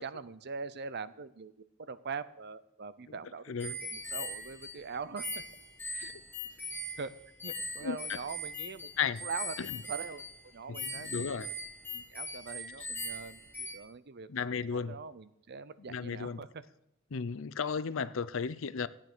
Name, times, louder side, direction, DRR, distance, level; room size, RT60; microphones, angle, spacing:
voice 1, 0.0-3.5 3.9-5.4 5.9-6.1 7.0-7.1 7.4-8.9 9.2-9.5 9.9-10.2 10.5-11.3 11.9-16.6 18.0-18.1, right 5 dB, 50° right, 0.6 m, -42 dB
voice 2, 3.5-3.8 7.8-8.0 9.0-9.2 9.6-9.8 10.7-11.5 12.8-12.9 14.3-15.0 15.9-16.4 17.1-18.9, left 6 dB, 65° left, 0.6 m, -34 dB
sound 1, 3.6-13.7, left 1 dB, 10° left, 1.6 m, -41 dB
14.5 x 9.0 x 6.1 m
head